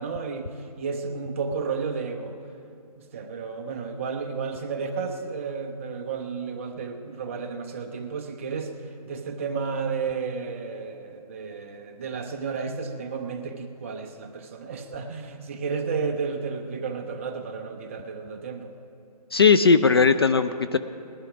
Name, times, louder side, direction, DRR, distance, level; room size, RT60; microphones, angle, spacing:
voice 1, 0.0-2.4 3.1-8.7 9.1-18.7, right 5 dB, 20° right, 4 dB, 0.7 m, -32 dB
voice 2, 19.3-20.8, left 5 dB, 40° left, 11 dB, 0.4 m, -18 dB
19.0 x 11.0 x 4.9 m, 2.5 s
figure-of-eight pair, 160°, 21 cm